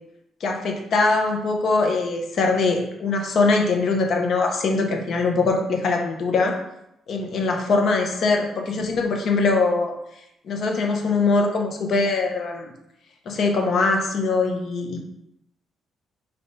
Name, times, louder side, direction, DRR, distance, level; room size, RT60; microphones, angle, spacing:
voice 1, 0.4-6.6 7.1-9.9 10.5-12.7 13.3-15.0, left 3 dB, 60° left, 2 dB, 0.8 m, -22 dB
4.4 x 3.4 x 2.7 m, 0.80 s
cardioid pair, 90°, 0 cm